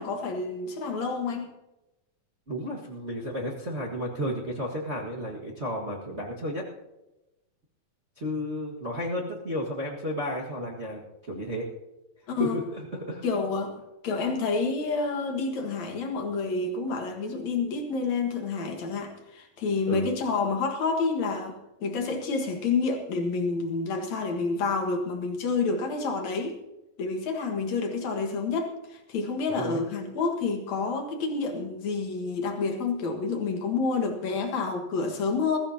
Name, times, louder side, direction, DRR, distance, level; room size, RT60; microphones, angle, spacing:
voice 1, 0.0-1.5 12.3-12.6 13.2-26.6 27.0-35.6, left 4 dB, 55° left, 3 dB, 2.6 m, -29 dB
voice 2, 2.5-6.7 8.2-11.6 12.4-13.2 19.9-20.1 29.5-29.8, equal, 55° right, -3 dB, 0.7 m, -32 dB
21.5 x 14.5 x 2.8 m, 0.99 s
omnidirectional pair, 4.1 m